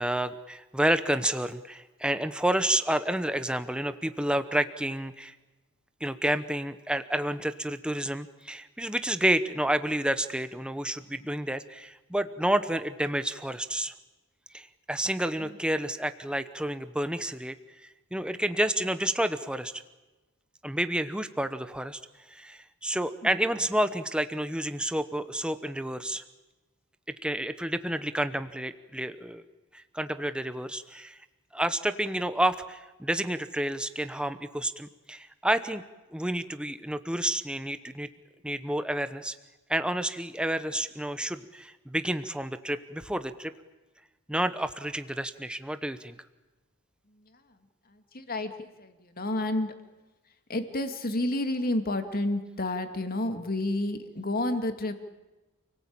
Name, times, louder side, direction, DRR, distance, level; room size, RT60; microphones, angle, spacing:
voice 1, 0.0-5.3 6.0-13.9 14.5-17.6 18.1-19.7 20.6-22.0 22.3-26.2 27.2-29.4 29.7-31.2 31.5-35.8 36.1-38.1 38.4-39.4 39.7-43.5 44.3-46.2, right 1 dB, 5° right, 11 dB, 1.0 m, -30 dB
voice 2, 48.1-49.7 50.5-55.0, left 1 dB, 45° left, 7 dB, 2.4 m, -30 dB
29.0 x 18.5 x 8.8 m, 1.1 s
head